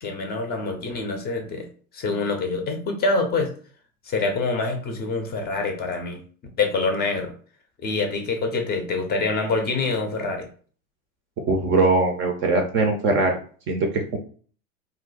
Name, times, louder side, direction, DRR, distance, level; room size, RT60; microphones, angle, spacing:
voice 1, 0.0-1.7 1.9-3.5 4.0-6.2 6.6-7.3 7.8-10.5, left 3 dB, 20° left, 4 dB, 0.6 m, -25 dB
voice 2, 11.5-13.4 13.7-14.2, right 3 dB, 30° right, 3 dB, 0.5 m, -21 dB
2.6 x 2.1 x 3.9 m, 0.43 s
hypercardioid pair, 100°, 43 cm